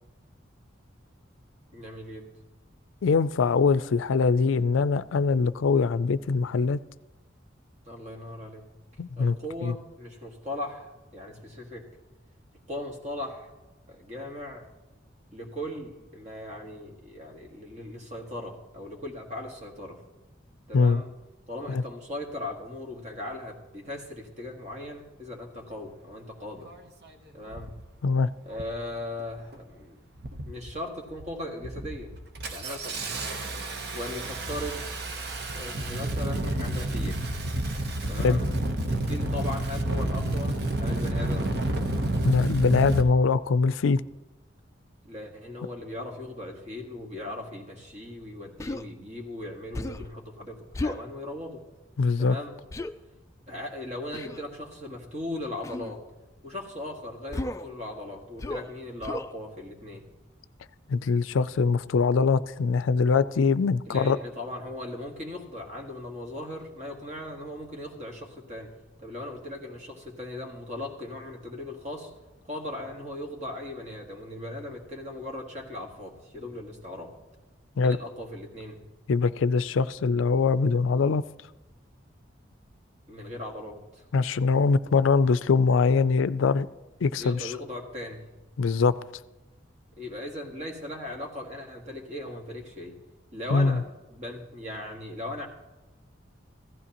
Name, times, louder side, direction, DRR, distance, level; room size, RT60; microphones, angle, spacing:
voice 1, 1.7-2.3 7.9-8.7 9.2-11.9 12.7-13.5 13.9-14.7 15.3-20.0 20.7-21.1 21.5-26.7 27.3-27.8 28.4-30.0 30.4-32.1 32.5-33.0 33.9-34.9 35.5-37.4 38.1-38.5 38.9-41.6 45.0-51.6 52.2-52.6 53.5-56.0 56.4-60.0 63.9-68.7 69.0-72.1 72.4-77.1 77.8-78.8 83.1-84.0 87.2-88.2 90.0-93.0 93.3-95.5, left 1 dB, 35° right, 1 dB, 1.8 m, -38 dB
voice 2, 3.0-6.8 9.0-9.4 9.6-9.7 20.7-21.0 21.7-21.8 28.0-28.3 38.2-38.4 42.2-44.0 52.0-52.4 60.9-64.2 77.8-78.0 79.1-81.2 84.1-86.7 87.0-87.5 88.6-89.0 93.5-93.8, left 4 dB, 85° left, 16 dB, 0.4 m, -23 dB
Engine starting, 26.7-26.8 27.5-27.8 28.5-28.8 29.2-29.7 30.2-30.7 31.1-31.3 31.6-43.0, right 1 dB, 55° right, 0.9 m, -30 dB
Human voice, 48.6-48.9 49.7-50.1 50.7-51.0 52.7-52.9 54.1-54.4 55.6-55.9 57.3-57.7 58.4-58.7 59.0-59.3, left 2 dB, 15° left, 0.3 m, -33 dB
15.5 x 14.0 x 2.9 m, 1.1 s
head